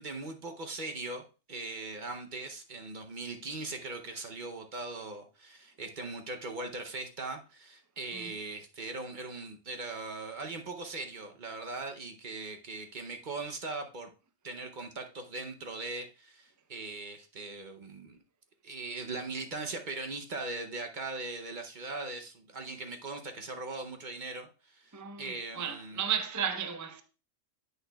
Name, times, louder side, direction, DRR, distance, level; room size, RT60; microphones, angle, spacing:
voice 1, 0.0-14.1 14.4-18.2 18.6-26.0, right 3 dB, 45° right, 0.8 m, -40 dB
voice 2, 24.9-25.2 25.5-27.0, right 8 dB, 25° right, 0.4 m, -33 dB
10.0 x 8.1 x 2.3 m
omnidirectional pair, 1.4 m